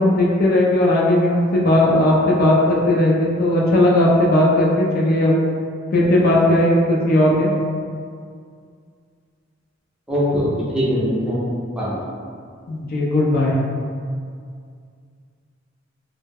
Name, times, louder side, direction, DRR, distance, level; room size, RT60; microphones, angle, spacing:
voice 1, 0.0-5.3 5.9-7.5 12.7-13.6, left 1 dB, 50° left, -3 dB, 0.4 m, -17 dB
voice 2, 10.1-12.0, equal, 5° right, -8 dB, 0.5 m, -22 dB
2.2 x 2.0 x 3.3 m, 2.2 s
head